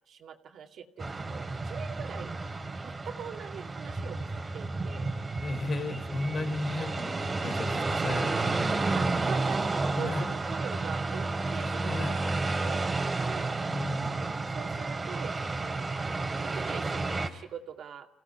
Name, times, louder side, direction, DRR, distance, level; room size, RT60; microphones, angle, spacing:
voice 1, 0.1-2.3 2.8-5.1 8.9-12.3 12.6-13.5 14.5-15.9 16.4-18.1, right 7 dB, 65° right, 4 dB, 2.3 m, -43 dB
sound 1, 1.0-17.3, right 3 dB, 25° right, 2.6 m, -31 dB
voice 2, 5.4-7.2 7.4-9.2 10.0-10.4 11.9-12.2 13.7-14.2, left 2 dB, 45° left, 10 dB, 3.6 m, -35 dB
26.0 x 17.0 x 9.8 m, 0.86 s
cardioid pair, 90°, 0 cm